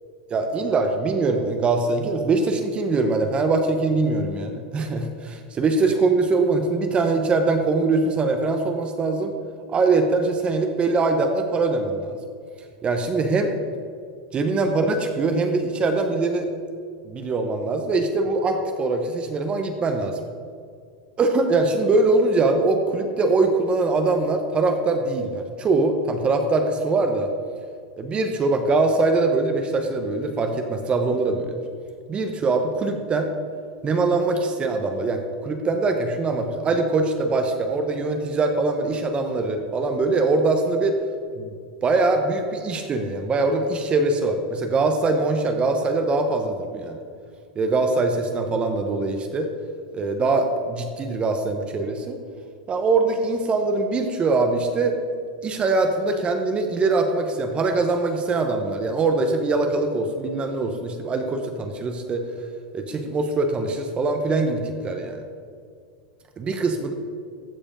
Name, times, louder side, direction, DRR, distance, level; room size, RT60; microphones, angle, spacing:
voice 1, 0.3-9.3 9.7-12.2 12.8-13.5 14.3-16.5 17.1-20.2 21.2-27.3 28.0-31.6 32.1-33.3 33.8-41.0 41.4-41.5 41.8-47.0 47.6-49.5 49.9-52.2 52.7-55.0 55.4-62.2 62.7-65.2 66.4-66.9, right 3 dB, 25° right, 5 dB, 0.8 m, -22 dB
14.5 x 4.9 x 5.2 m, 2.2 s
supercardioid pair, 135°, 5 cm